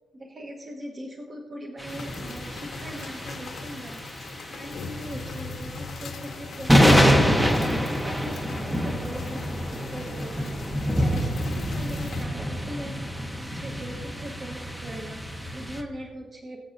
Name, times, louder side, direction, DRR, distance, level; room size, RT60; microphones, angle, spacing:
voice 1, 0.1-4.0 4.5-7.3 7.8-13.0 13.4-16.6, right 1 dB, 30° right, 0 dB, 1.1 m, -40 dB
sound 1, 1.8-15.8, equal, 5° right, 0.9 m, -26 dB
sound 2, 1.9-12.2, left 4 dB, 55° left, 1.2 m, -41 dB
21.5 x 7.7 x 2.7 m, 1.4 s
wide cardioid pair, 160°, 0 cm